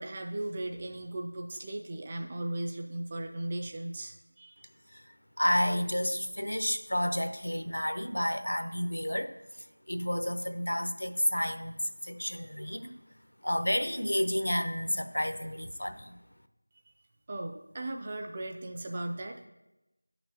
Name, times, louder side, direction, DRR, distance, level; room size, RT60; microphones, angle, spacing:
voice 1, 0.0-4.7 17.3-19.5, right 1 dB, 15° right, 3 dB, 0.3 m, -37 dB
voice 2, 5.4-9.3 9.9-12.9 13.4-16.2, equal, 75° left, 9 dB, 0.7 m, -30 dB
8.7 x 5.8 x 2.8 m, 0.97 s
figure-of-eight pair, 175°, 0 cm